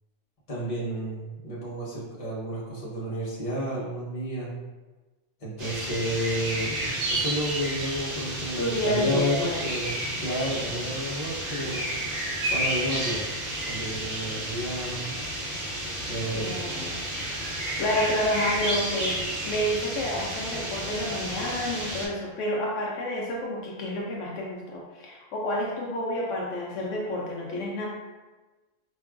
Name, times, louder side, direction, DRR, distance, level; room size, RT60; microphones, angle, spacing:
voice 1, 0.5-4.5 5.4-11.9 12.4-13.2 13.7-15.1 16.0-16.8, equal, 30° left, -7 dB, 1.0 m, -31 dB
sound 1, 5.6-22.1, right 1 dB, 50° right, 1.0 m, -31 dB
voice 2, 8.6-9.6 16.3-17.0 17.8-27.9, left 1 dB, 75° left, -2 dB, 0.9 m, -29 dB
4.5 x 2.6 x 2.4 m, 1.2 s
omnidirectional pair, 1.3 m